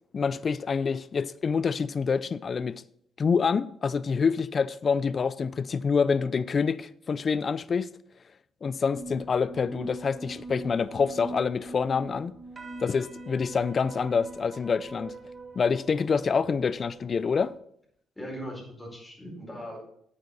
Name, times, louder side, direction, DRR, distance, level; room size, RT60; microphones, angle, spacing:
voice 1, 0.1-2.8 3.2-7.9 8.6-12.4 12.8-15.2 15.6-17.5, left 5 dB, 45° left, 0.4 m, -26 dB
sound 1, 8.9-17.5, right 2 dB, 40° right, 1.4 m, -42 dB
voice 2, 18.1-19.8, equal, 15° left, 4.7 m, -39 dB
9.6 x 8.6 x 4.1 m
cardioid pair, 90°, 0 cm